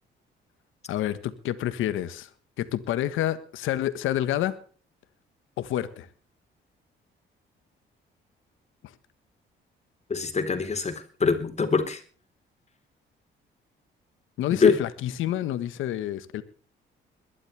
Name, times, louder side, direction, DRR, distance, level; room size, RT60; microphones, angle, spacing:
voice 1, 0.9-2.3 2.6-4.6 5.6-6.1 14.4-16.4, left 12 dB, 85° left, 1.5 m, -28 dB
voice 2, 10.1-12.0 14.5-14.8, left 4 dB, 35° left, 4.1 m, -24 dB
22.0 x 12.0 x 3.4 m
cardioid pair, 90°, 20 cm